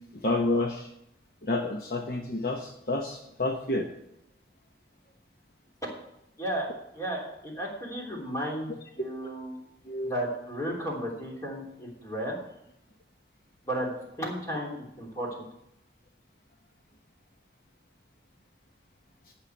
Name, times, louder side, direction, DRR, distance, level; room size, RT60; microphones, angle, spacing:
voice 1, 0.2-0.9 1.4-3.9 9.8-10.1, left 2 dB, 55° left, 2 dB, 1.0 m, -29 dB
voice 2, 6.9-9.6 10.0-12.4 13.6-13.9 14.2-15.4, right 1 dB, 20° left, -3 dB, 3.2 m, -34 dB
14.5 x 5.8 x 6.8 m, 0.81 s
head